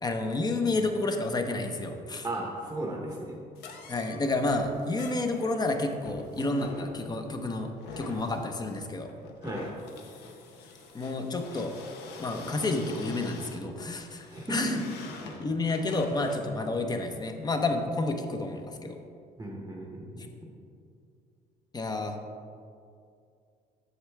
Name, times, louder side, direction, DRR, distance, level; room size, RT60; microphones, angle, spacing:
voice 1, 0.0-2.3 3.9-7.7 8.0-9.1 10.9-11.8 12.2-14.8 15.2-19.0 21.7-22.2, left 2 dB, 25° left, 5 dB, 0.7 m, -30 dB
voice 2, 2.2-3.4 9.4-9.7 14.3-14.8 19.4-20.5, right 1 dB, 15° right, -1 dB, 0.8 m, -34 dB
sound 1, 3.5-16.5, left 3 dB, 80° left, 0.9 m, -45 dB
8.0 x 6.2 x 3.3 m, 2.4 s
cardioid pair, 110°, 17 cm